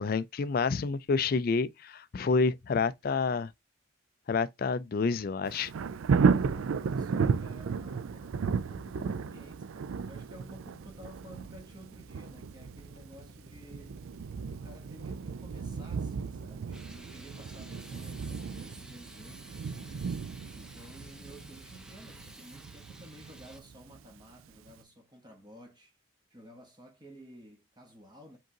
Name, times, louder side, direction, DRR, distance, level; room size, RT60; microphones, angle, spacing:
voice 1, 0.0-3.5 4.3-5.7, left 4 dB, 45° left, 0.3 m, -28 dB
Thunder, 5.4-24.2 24.7-24.8, right 5 dB, 80° right, 0.4 m, -34 dB
voice 2, 6.2-14.0 14.5-20.1 20.5-25.9 26.3-28.4, equal, 20° right, 1.1 m, -53 dB
Drill, 10.4-22.3, right 2 dB, 50° right, 1.1 m, -54 dB
sound 1, 16.7-23.6, right 1 dB, 5° right, 0.6 m, -52 dB
5.1 x 3.7 x 2.8 m
head